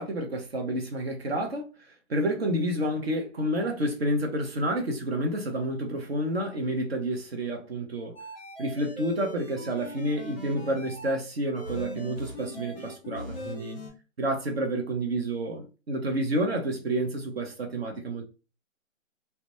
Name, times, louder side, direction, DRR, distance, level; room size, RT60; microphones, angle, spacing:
voice 1, 0.0-1.7 2.1-8.2 8.6-13.8 14.2-18.2, right 1 dB, 50° right, 0.8 m, -29 dB
sound 1, 8.2-11.1 11.5-13.9, left 1 dB, 10° left, 0.9 m, -40 dB
2.4 x 2.2 x 2.9 m
hypercardioid pair, 160°, 39 cm